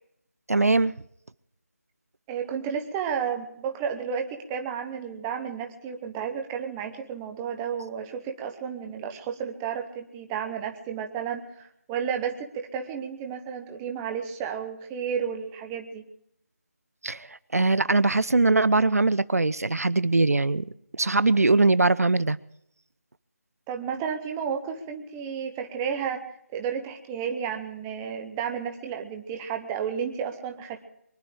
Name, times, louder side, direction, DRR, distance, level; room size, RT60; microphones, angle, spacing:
voice 1, 0.5-0.9 17.0-20.6 21.0-22.4, right 3 dB, 70° right, 18 dB, 0.7 m, -21 dB
voice 2, 2.3-16.0 23.7-26.2 26.5-30.8, right 7 dB, 10° right, 5 dB, 0.9 m, -32 dB
23.5 x 11.5 x 4.9 m, 0.73 s
figure-of-eight pair, 160°, 8 cm